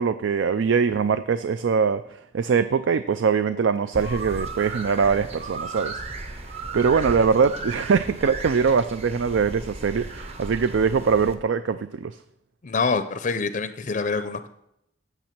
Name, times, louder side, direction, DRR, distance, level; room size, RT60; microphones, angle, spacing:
voice 1, 0.0-2.0 2.3-6.0 6.7-12.1, right 5 dB, 75° right, 12 dB, 0.4 m, -22 dB
sound 1, 3.9-11.3, right 3 dB, 35° right, 0.8 m, -35 dB
voice 2, 12.6-14.5, left 4 dB, 40° left, 10 dB, 0.5 m, -26 dB
9.1 x 7.2 x 5.9 m, 0.79 s
head